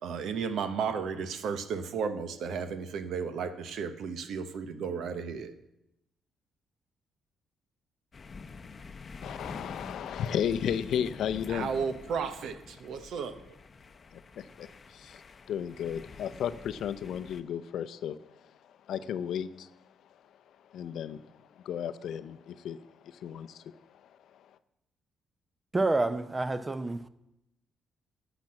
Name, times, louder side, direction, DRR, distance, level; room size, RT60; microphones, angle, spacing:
voice 1, 0.0-5.5 11.5-13.4, right 6 dB, 75° right, 0.9 m, -34 dB
sound 1, 8.1-17.4, left 4 dB, 35° left, 0.7 m, -47 dB
voice 2, 9.2-11.7 14.1-15.2 15.5-19.7 20.7-21.3 21.6-22.8 23.0-24.4, left 9 dB, 75° left, 0.5 m, -34 dB
voice 3, 25.7-27.1, right 2 dB, 20° right, 0.7 m, -28 dB
11.5 x 6.0 x 7.5 m
cardioid pair, 90°, 0 cm